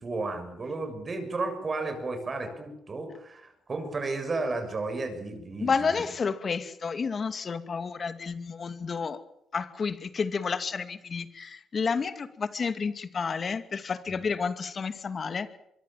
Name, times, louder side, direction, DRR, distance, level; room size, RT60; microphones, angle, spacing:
voice 1, 0.0-6.0 14.1-14.2, right 3 dB, 35° right, 8 dB, 7.0 m, -33 dB
voice 2, 5.6-9.2 9.5-15.5, left 5 dB, 40° left, 11 dB, 2.3 m, -30 dB
24.5 x 23.0 x 7.5 m, 0.82 s
cardioid pair, 90°, 0 cm